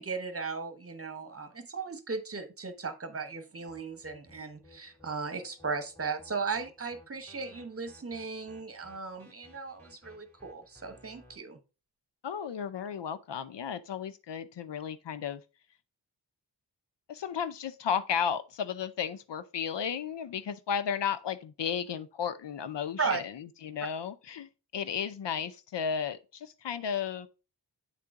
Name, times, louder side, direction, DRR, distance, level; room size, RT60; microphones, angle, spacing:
voice 1, 0.0-11.6 23.0-23.2, right 4 dB, 35° right, 1.0 m, -36 dB
sound 1, 3.7-11.4, left 1 dB, 5° left, 2.6 m, -58 dB
voice 2, 12.2-15.4 17.1-27.3, left 7 dB, 80° left, 0.6 m, -34 dB
8.4 x 3.8 x 3.5 m
cardioid pair, 55°, 42 cm